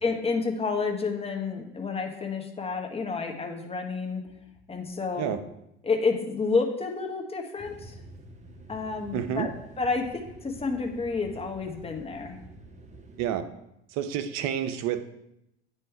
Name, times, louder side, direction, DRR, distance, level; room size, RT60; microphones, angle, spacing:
voice 1, 0.0-4.2 4.7-5.3 5.8-8.0 8.7-9.5 9.8-12.4, left 4 dB, 20° left, 2 dB, 1.2 m, -30 dB
sound 1, 7.6-13.4, right 2 dB, 20° right, 1.0 m, -48 dB
voice 2, 9.1-9.5 13.2-13.5 13.9-15.0, right 9 dB, 55° right, 10 dB, 0.7 m, -29 dB
9.3 x 3.2 x 4.6 m, 0.84 s
hypercardioid pair, 75°, 32 cm